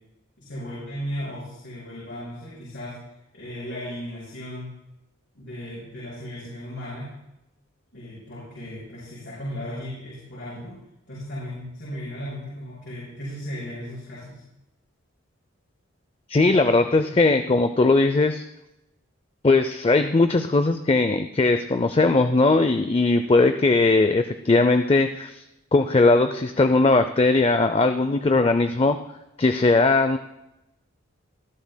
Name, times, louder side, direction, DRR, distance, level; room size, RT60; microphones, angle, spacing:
voice 1, 0.4-3.0 3.3-4.7 5.3-7.1 7.9-10.8 11.1-14.4, equal, 60° left, -8 dB, 5.6 m, -36 dB
voice 2, 16.3-18.4 19.4-25.4 25.7-29.0 29.4-30.2, left 3 dB, 25° left, 9 dB, 0.4 m, -19 dB
20.5 x 12.5 x 2.2 m, 0.89 s
head